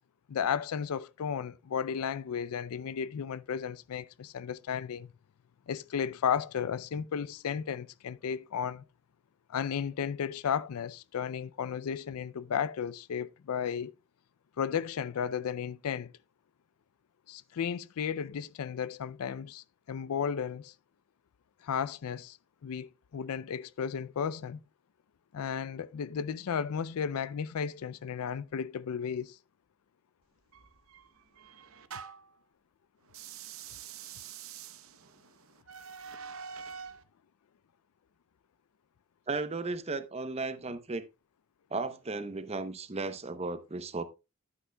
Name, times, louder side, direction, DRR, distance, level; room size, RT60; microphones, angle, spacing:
voice 1, 0.3-5.1 5.7-8.8 9.5-13.9 14.6-16.1 17.3-20.7 21.6-22.4 22.6-24.6 25.3-29.4, left 7 dB, 80° left, 0.4 m, -34 dB
sound 1, 30.5-32.4 33.1-37.0, right 7 dB, 65° right, 0.8 m, -46 dB
voice 2, 39.3-41.0 41.7-44.0, right 3 dB, 30° right, 0.7 m, -35 dB
10.5 x 9.5 x 2.2 m
head